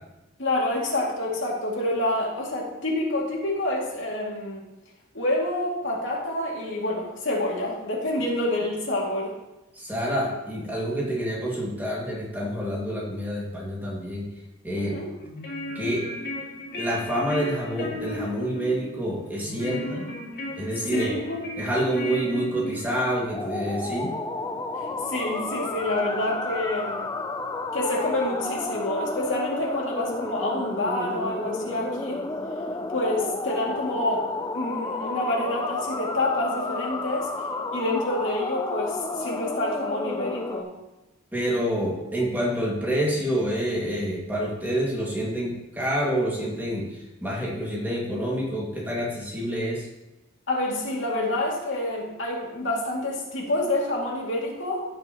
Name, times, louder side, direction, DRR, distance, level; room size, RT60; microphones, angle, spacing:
voice 1, 0.4-4.6 5.1-9.3 14.9-15.1 19.7-20.0 20.9-21.4 24.8-27.1 27.7-32.2 32.9-37.3 37.7-40.7 50.5-54.8, left 1 dB, 70° left, -3 dB, 2.5 m, -28 dB
voice 2, 9.7-14.3 14.6-15.0 15.8-16.1 16.7-20.0 20.6-21.1 21.6-24.1 41.3-49.9, equal, 10° right, -5 dB, 2.1 m, -27 dB
sound 1, 15.2-23.2, left 1 dB, 55° left, 2.4 m, -35 dB
sound 2, 23.3-40.6, left 2 dB, 20° left, 0.5 m, -31 dB
16.0 x 6.2 x 3.0 m, 1.0 s
head